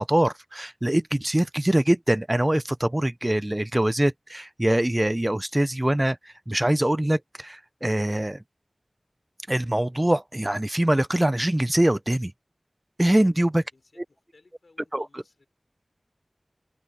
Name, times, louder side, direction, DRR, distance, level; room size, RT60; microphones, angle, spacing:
voice 1, 0.0-8.4 9.5-12.3 13.0-13.6 14.9-15.4, right 1 dB, 20° right, 0.3 m, -23 dB
voice 2, 13.7-15.5, left 3 dB, 80° left, 5.5 m, -61 dB
open air
wide cardioid pair, 50°, 0 cm